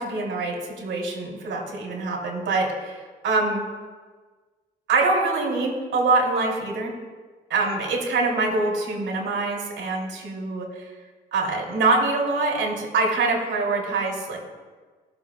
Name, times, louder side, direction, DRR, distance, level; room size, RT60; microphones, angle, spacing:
voice 1, 0.0-2.9 3.2-3.6 4.9-6.9 7.5-10.7 11.3-14.4, right 3 dB, 70° right, -2 dB, 3.6 m, -24 dB
20.0 x 7.3 x 2.6 m, 1.4 s
cardioid pair, 90°, 20 cm